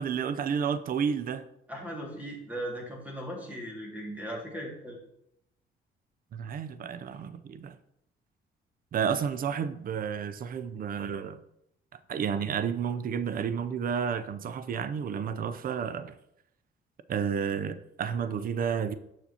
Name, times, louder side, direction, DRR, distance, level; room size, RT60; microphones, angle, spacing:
voice 1, 0.0-1.4 6.3-7.8 8.9-11.4 12.1-16.1 17.1-18.9, right 7 dB, 45° right, 0.5 m, -31 dB
voice 2, 1.7-5.0, equal, 10° right, 2.0 m, -38 dB
7.0 x 5.8 x 2.8 m
cardioid pair, 90°, 20 cm